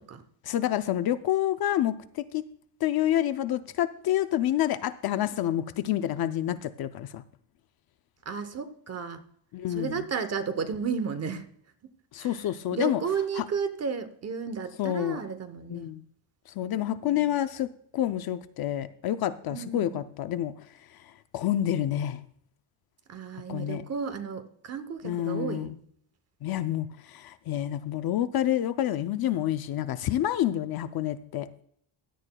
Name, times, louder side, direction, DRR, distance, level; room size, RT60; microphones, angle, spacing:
voice 1, 0.4-2.4 2.8-7.2 9.5-10.0 12.1-13.0 13.4-13.5 14.8-15.2 15.7-16.0 16.6-20.6 21.3-22.2 23.5-23.8 25.0-25.7 26.4-31.5, left 12 dB, 50° left, 11 dB, 0.5 m, -28 dB
voice 2, 8.3-9.2 9.7-11.5 12.2-12.4 12.7-15.9 17.0-17.2 19.5-20.0 23.1-25.7, right 6 dB, 35° right, 10 dB, 0.8 m, -33 dB
16.5 x 10.5 x 2.2 m, 0.65 s
cardioid pair, 180°, 47 cm